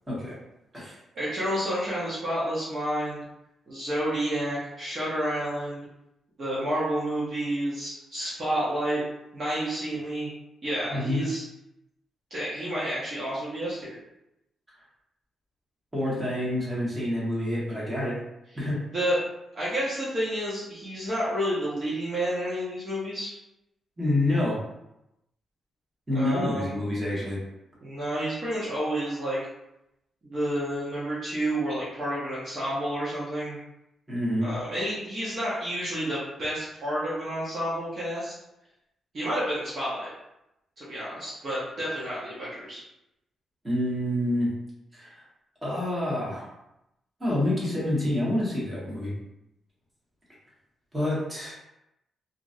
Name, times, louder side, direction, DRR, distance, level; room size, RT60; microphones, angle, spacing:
voice 1, 0.7-3.3 3.7-5.8 6.4-9.0 9.3-10.3 10.6-11.4 12.3-14.0 18.9-19.2 19.5-23.3 26.1-26.7 27.8-29.4 30.2-33.6 34.4-38.3 39.1-40.1 40.8-42.8, right 1 dB, 45° right, -8 dB, 1.0 m, -30 dB
voice 2, 10.9-11.2 15.9-18.2 18.5-18.8 24.0-24.6 26.1-27.4 34.1-34.5 43.6-44.5 44.9-45.2 45.6-46.5 47.2-49.1 50.9-51.6, left 1 dB, 15° right, -8 dB, 1.4 m, -27 dB
2.9 x 2.6 x 2.6 m, 0.86 s
cardioid pair, 105°, 0 cm